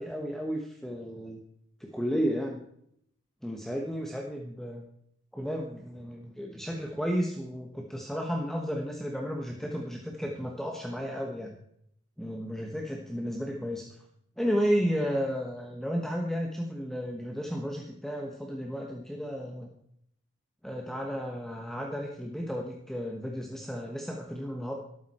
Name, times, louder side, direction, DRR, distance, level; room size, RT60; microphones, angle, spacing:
voice 1, 0.0-1.4 1.8-2.6 3.4-4.8 5.3-11.5 12.2-13.8 14.4-19.7 20.6-24.8, equal, ahead, 1 dB, 1.2 m, -33 dB
12.5 x 12.5 x 4.3 m, 0.72 s
head